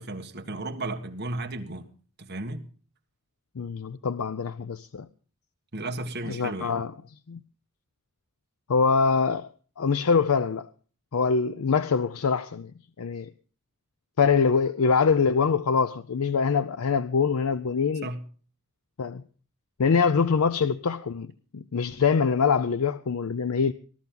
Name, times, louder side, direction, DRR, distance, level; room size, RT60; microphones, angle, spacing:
voice 1, 0.0-1.9 2.2-2.6 5.7-6.7 18.0-18.2, right 2 dB, 50° right, 1.7 m, -34 dB
voice 2, 3.6-5.1 6.2-6.9 7.3-7.4 8.7-9.5 9.8-10.7 11.1-12.7 13.0-13.3 14.2-18.1 19.0-19.2 19.8-23.7, left 5 dB, 90° left, 0.6 m, -24 dB
19.5 x 12.0 x 3.9 m
head